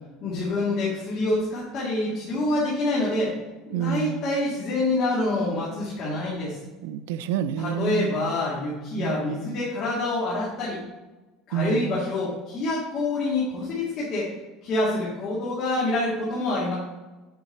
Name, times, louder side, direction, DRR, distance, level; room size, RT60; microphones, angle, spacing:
voice 1, 0.2-3.3 3.6-6.6 7.3-10.8 11.5-14.3 14.6-16.7, left 2 dB, 35° left, -7 dB, 2.2 m, -26 dB
voice 2, 3.7-4.2 6.8-8.1 9.0-9.3 11.5-11.9, right 10 dB, 85° right, 14 dB, 0.4 m, -28 dB
8.2 x 5.7 x 4.2 m, 1.1 s
cardioid pair, 165°, 0 cm